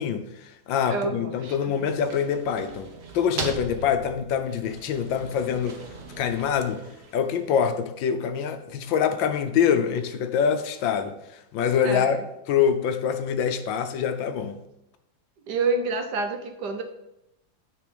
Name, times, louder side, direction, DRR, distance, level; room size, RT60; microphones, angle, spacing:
voice 1, 0.0-5.8 6.2-6.8 7.1-12.2 12.5-14.6, left 7 dB, 75° left, 8 dB, 1.4 m, -25 dB
voice 2, 0.9-1.5 1.8-1.9 11.8-12.2 15.5-16.8, right 3 dB, 65° right, 6 dB, 1.2 m, -28 dB
sound 1, 1.7-7.7, right 3 dB, 45° right, 0.8 m, -39 dB
9.4 x 3.8 x 5.1 m, 0.87 s
omnidirectional pair, 2.1 m